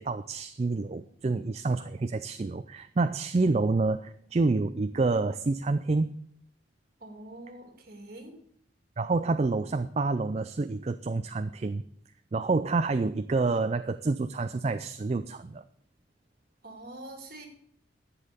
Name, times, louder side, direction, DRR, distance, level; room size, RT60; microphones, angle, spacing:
voice 1, 0.0-6.2 9.0-11.8 12.3-15.6, right 3 dB, 35° right, 10 dB, 0.4 m, -28 dB
voice 2, 7.0-8.4 16.6-17.5, right 1 dB, 50° right, 4 dB, 2.4 m, -45 dB
11.5 x 7.6 x 6.6 m, 0.66 s
head